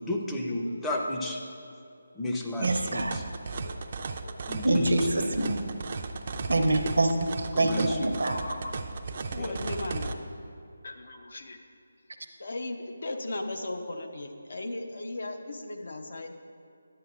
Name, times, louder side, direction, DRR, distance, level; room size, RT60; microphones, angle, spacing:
voice 1, 0.0-1.4 2.1-3.2 4.5-5.3 6.7-6.8 7.5-8.0 9.4-9.5, left 1 dB, 10° left, -1 dB, 0.6 m, -33 dB
sound 1, 2.6-10.1, right 4 dB, 45° right, 0.4 m, -35 dB
voice 2, 2.6-3.2 4.6-5.7 6.5-8.4, right 2 dB, 70° right, 5 dB, 0.7 m, -26 dB
voice 3, 3.6-4.6 8.2-8.7 9.3-10.2 10.8-11.6 12.4-16.3, left 2 dB, 65° left, 4 dB, 0.7 m, -37 dB
10.5 x 7.9 x 2.4 m, 2.5 s
figure-of-eight pair, 155°, 0 cm